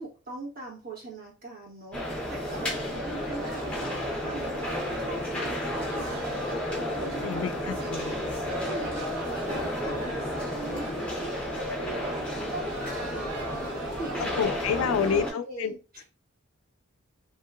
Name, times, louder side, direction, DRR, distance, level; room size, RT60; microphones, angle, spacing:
voice 1, 0.0-2.0 2.3-3.8 4.1-6.6 6.9-8.0 8.6-9.4 9.7-14.4 14.7-16.0, right 3 dB, 40° right, 1.3 m, -42 dB
sound 1, 1.9-15.3, left 1 dB, 5° left, 0.7 m, -32 dB
sound 2, 2.5-14.4, right 3 dB, 90° right, 0.5 m, -41 dB
voice 2, 7.2-8.2 14.2-15.8, left 7 dB, 75° left, 0.3 m, -29 dB
3.1 x 2.7 x 2.4 m
head